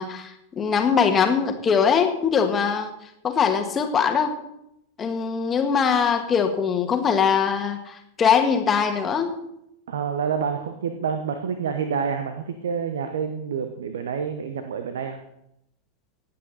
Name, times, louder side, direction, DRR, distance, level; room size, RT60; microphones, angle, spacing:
voice 1, 0.0-2.9 3.2-4.3 5.0-9.4, left 6 dB, 20° left, 6 dB, 1.6 m, -22 dB
voice 2, 9.9-15.2, right 6 dB, 65° right, 8 dB, 1.1 m, -28 dB
18.5 x 8.5 x 4.2 m, 0.80 s
figure-of-eight pair, 90°, 0 cm